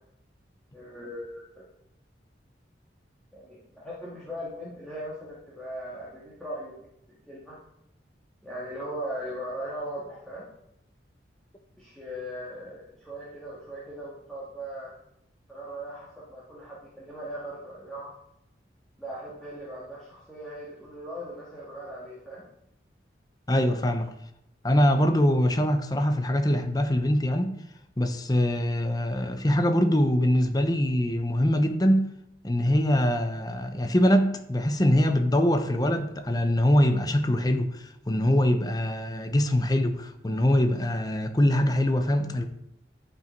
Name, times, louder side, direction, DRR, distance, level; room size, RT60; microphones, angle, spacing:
voice 1, 0.7-1.7 3.3-6.9 7.3-7.6 8.4-10.4 11.7-14.9 15.5-18.1 19.0-22.5, equal, 5° left, 2.1 m, -39 dB
voice 2, 23.5-24.1 24.6-27.6 28.0-32.1 32.4-42.4, left 1 dB, 20° left, 0.8 m, -23 dB
11.0 x 5.9 x 4.6 m
head